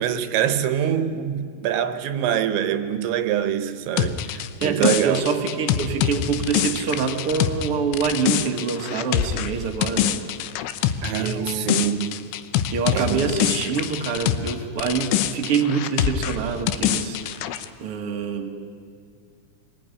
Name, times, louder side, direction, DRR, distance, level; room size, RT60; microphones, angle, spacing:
voice 1, 0.0-5.3 11.0-12.2 12.9-13.4, right 9 dB, 80° right, 3.2 m, -24 dB
sound 1, 4.0-14.5 14.8-17.7, left 11 dB, 85° left, 3.4 m, -25 dB
voice 2, 4.6-10.2 11.2-11.8 12.7-18.5, right 6 dB, 55° right, 1.5 m, -26 dB
26.0 x 21.0 x 9.8 m
omnidirectional pair, 5.5 m